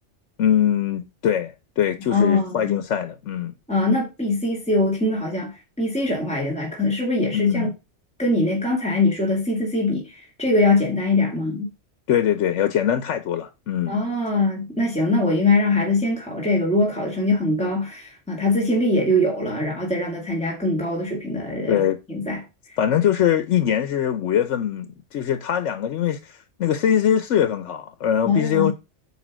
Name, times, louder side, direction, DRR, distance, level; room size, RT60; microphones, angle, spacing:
voice 1, 0.4-3.5 7.3-7.7 12.1-13.9 21.7-22.0 22.8-28.7, left 9 dB, 90° left, 1.1 m, -22 dB
voice 2, 2.1-2.8 3.7-7.7 8.2-11.7 13.9-21.8 22.1-22.4 22.7-22.8 28.2-28.7, left 2 dB, 5° left, 2.3 m, -22 dB
9.4 x 3.4 x 6.1 m
omnidirectional pair, 1.2 m